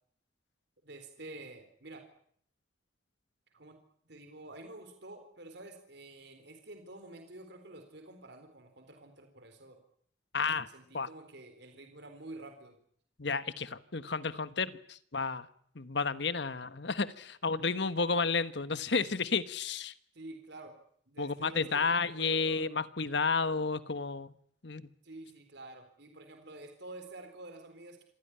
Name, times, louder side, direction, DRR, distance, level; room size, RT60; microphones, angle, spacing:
voice 1, 0.8-2.1 3.5-3.8 4.0-9.8 10.3-12.8 20.1-20.8 21.1-22.7 25.0-28.0, right 2 dB, 60° right, 6 dB, 3.9 m, -49 dB
voice 2, 10.3-10.7 10.9-11.1 13.2-15.5 15.7-19.9 21.2-24.3 24.6-24.9, left 4 dB, 60° left, 14 dB, 1.2 m, -32 dB
26.5 x 16.0 x 10.0 m, 0.65 s
head